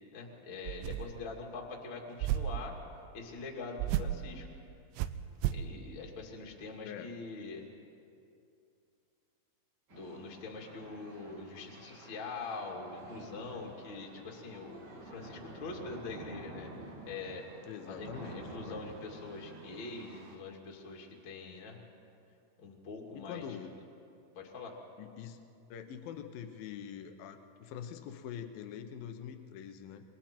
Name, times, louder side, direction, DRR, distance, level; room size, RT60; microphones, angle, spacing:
voice 1, 0.1-2.8 3.1-4.5 5.5-7.6 9.9-16.7 17.1-17.5 17.9-21.8 22.6-23.4 24.3-24.8, left 3 dB, 35° left, -1 dB, 2.4 m, -44 dB
sound 1, 0.7-1.3 2.2-2.7 3.8-4.2 5.0-5.7, right 12 dB, 85° right, 2.7 m, -33 dB
sound 2, 9.9-20.4, right 2 dB, 45° right, 3.6 m, -50 dB
voice 2, 17.7-18.8 23.1-23.7 25.0-25.4 25.7-30.0, left 8 dB, 70° left, 7 dB, 2.6 m, -44 dB
27.5 x 23.0 x 4.5 m, 2.6 s
omnidirectional pair, 4.7 m